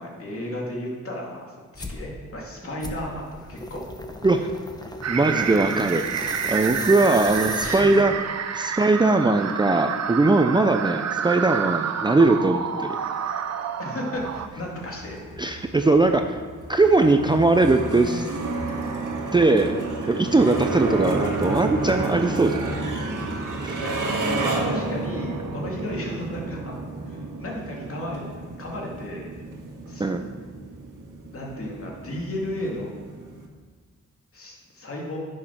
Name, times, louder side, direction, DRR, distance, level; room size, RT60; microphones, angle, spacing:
voice 1, 0.0-3.9 5.2-5.9 7.5-8.1 13.8-15.2 23.8-26.8 27.1-28.2 28.6-29.3 29.9-30.0 31.3-32.9 34.3-35.2, left 1 dB, 45° left, -2 dB, 2.5 m, -34 dB
sound 1, 1.8-2.1 2.8-8.2, left 1 dB, 15° left, 0.8 m, -36 dB
sound 2, 5.0-14.5, right 7 dB, 60° right, 0.7 m, -29 dB
voice 2, 5.1-6.0 6.5-8.1 8.5-12.9 15.4-16.4 16.7-18.3 19.3-19.7 20.1-22.8 23.6-23.7 30.0-30.2, right 2 dB, 15° right, 5 dB, 0.5 m, -20 dB
sound 3, 14.1-33.4, right 2 dB, 90° right, 1.7 m, -31 dB
10.0 x 6.5 x 5.9 m, 1.5 s
wide cardioid pair, 115°, 30 cm